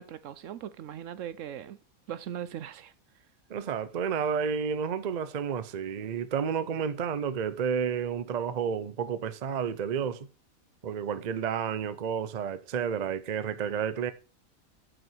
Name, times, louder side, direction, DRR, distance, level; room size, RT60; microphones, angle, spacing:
voice 1, 0.0-1.8 2.1-2.9, right 10 dB, 70° right, 0.9 m, -39 dB
voice 2, 3.5-10.3 10.8-14.1, right 7 dB, 45° right, 0.5 m, -31 dB
7.7 x 6.1 x 4.6 m
omnidirectional pair, 1.5 m